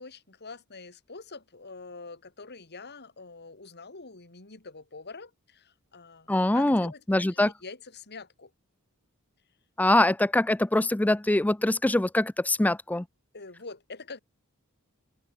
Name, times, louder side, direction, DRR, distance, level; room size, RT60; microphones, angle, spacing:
voice 1, 0.0-6.3 6.5-8.5 13.3-14.2, left 3 dB, 50° left, 3.4 m, -45 dB
voice 2, 6.3-7.5 9.8-13.1, left 1 dB, 5° left, 0.4 m, -23 dB
open air
head